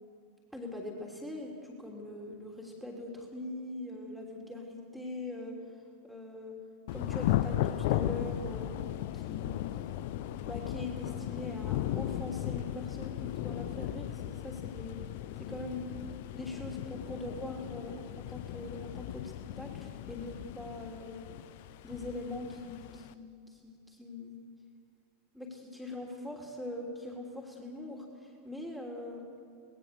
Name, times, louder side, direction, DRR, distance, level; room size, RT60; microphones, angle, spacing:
voice 1, 0.5-5.6 6.0-6.6 6.9-8.8 9.1-9.6 10.4-15.0 15.4-15.9 16.3-21.2 21.8-24.4 25.3-29.2, left 2 dB, ahead, 0 dB, 3.3 m, -42 dB
Thunder / Rain, 6.9-23.1, left 13 dB, 50° left, 0.7 m, -36 dB
24.5 x 19.5 x 6.9 m, 2.2 s
figure-of-eight pair, 90°, 0 cm